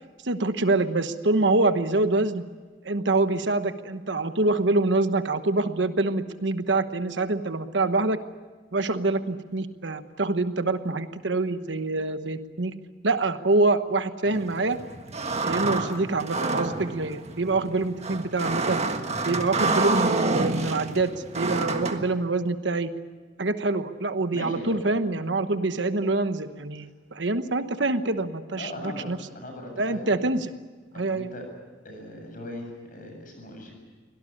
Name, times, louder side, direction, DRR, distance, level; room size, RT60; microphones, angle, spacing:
voice 1, 0.2-2.4 2.8-8.2 8.7-12.7 13.0-14.8 15.4-18.8 19.2-22.9 23.4-29.2 29.8-30.5 30.9-31.3, right 2 dB, 70° right, 10 dB, 1.2 m, -25 dB
sound 1, 14.3-22.0, right 3 dB, 35° right, 1.6 m, -28 dB
voice 2, 24.3-24.8 28.6-30.1 30.9-31.4 31.8-33.7, left 1 dB, 45° left, 3 dB, 7.9 m, -39 dB
24.0 x 18.0 x 10.0 m, 1.3 s
head